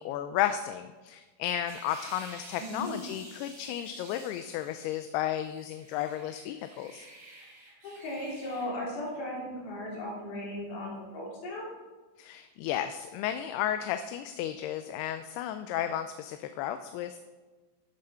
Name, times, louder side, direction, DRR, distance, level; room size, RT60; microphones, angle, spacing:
voice 1, 0.0-7.0 12.2-17.2, left 11 dB, 85° left, 9 dB, 2.6 m, -33 dB
sound 1, 1.7-5.1 5.4-8.7, right 2 dB, 50° right, 4.5 m, -51 dB
voice 2, 2.6-2.9 7.8-11.7, left 1 dB, 70° left, -4 dB, 4.9 m, -37 dB
12.5 x 7.5 x 5.6 m, 1.3 s
omnidirectional pair, 4.5 m